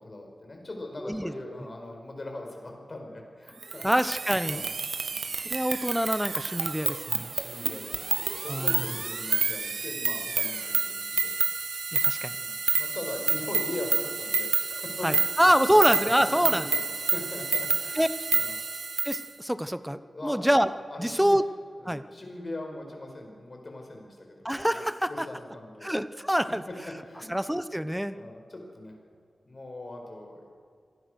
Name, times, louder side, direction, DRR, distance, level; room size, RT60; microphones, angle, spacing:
voice 1, 0.0-3.8 4.5-4.7 5.0-5.3 7.3-11.3 12.4-18.0 18.3-18.5 20.1-20.5 20.9-21.4 21.8-25.9 27.0-27.3 28.1-28.9 29.4-30.5, left 2 dB, 40° left, 2 dB, 5.2 m, -41 dB
voice 2, 1.0-1.3 3.8-4.6 5.4-7.3 8.5-8.8 11.9-12.3 15.0-16.7 17.9-18.1 19.0-20.7 21.0-21.4 21.8-22.0 24.4-25.3 25.8-26.6 27.3-28.2, equal, 5° right, 12 dB, 0.9 m, -25 dB
sound 1, 3.6-19.3, right 5 dB, 65° right, 1.3 m, -29 dB
26.5 x 19.5 x 6.5 m, 2.1 s
wide cardioid pair, 100°, 0 cm